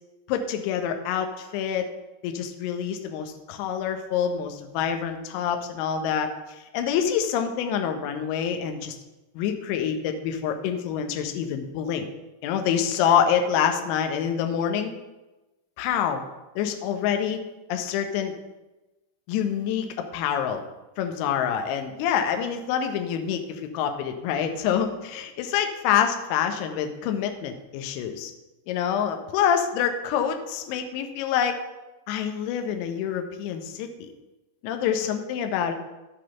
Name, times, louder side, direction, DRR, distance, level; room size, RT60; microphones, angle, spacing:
voice 1, 0.3-1.9 2.2-9.0 9.3-12.1 12.4-14.9 15.8-16.2 16.5-17.4 17.7-18.3 19.3-19.9 20.1-20.6 21.0-28.3 28.7-31.6 32.1-34.1 34.6-35.7, left 8 dB, 45° left, 6 dB, 1.2 m, -26 dB
13.0 x 4.9 x 5.7 m, 1.1 s
figure-of-eight pair, 90°, 0 cm